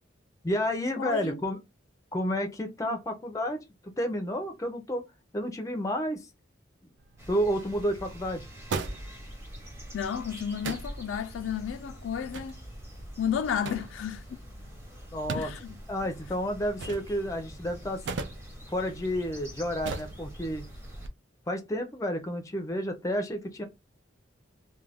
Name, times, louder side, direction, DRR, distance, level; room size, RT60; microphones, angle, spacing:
voice 1, 0.4-1.6 2.1-3.6 4.0-5.0 5.3-6.3 7.3-8.5 15.1-15.5 15.9-18.0 18.7-20.6 21.5-23.6, equal, 15° left, 0.4 m, -30 dB
voice 2, 1.0-1.4 2.9-3.0 9.9-12.6 13.2-14.4 15.3-15.8, left 8 dB, 85° left, 0.3 m, -32 dB
sound 1, 7.0-21.1, right 4 dB, 70° right, 0.4 m, -42 dB
sound 2, 7.2-21.1, equal, 15° right, 0.7 m, -45 dB
2.4 x 2.2 x 3.3 m
head